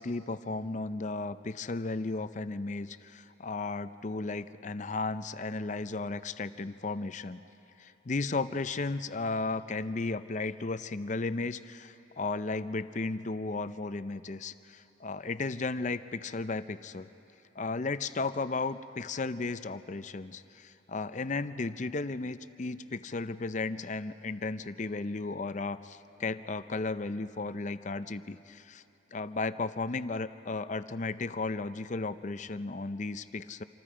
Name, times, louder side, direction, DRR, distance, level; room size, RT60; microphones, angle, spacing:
voice 1, 0.0-7.4 7.8-17.1 17.6-28.8 29.1-33.6, left 3 dB, 40° left, 12 dB, 0.5 m, -34 dB
27.0 x 27.0 x 5.0 m, 2.9 s
head